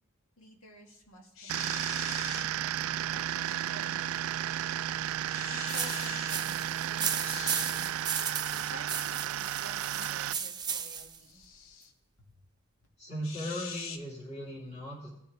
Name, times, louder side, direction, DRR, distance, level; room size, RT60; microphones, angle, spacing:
voice 1, 0.4-4.2 5.5-8.0 8.4-11.4 12.2-12.3, equal, 90° left, 1 dB, 2.1 m, -52 dB
sound 1, 1.4-2.5 3.3-3.6 5.3-6.4 7.1-7.7 11.2-11.9 13.2-14.0, left 6 dB, 70° left, 0.9 m, -43 dB
sound 2, 1.5-10.3, right 11 dB, 85° right, 0.3 m, -33 dB
sound 3, 5.7-11.2, right 7 dB, 20° right, 0.7 m, -35 dB
voice 2, 13.0-15.1, equal, 35° left, -5 dB, 3.1 m, -38 dB
18.0 x 6.8 x 3.4 m, 0.76 s
head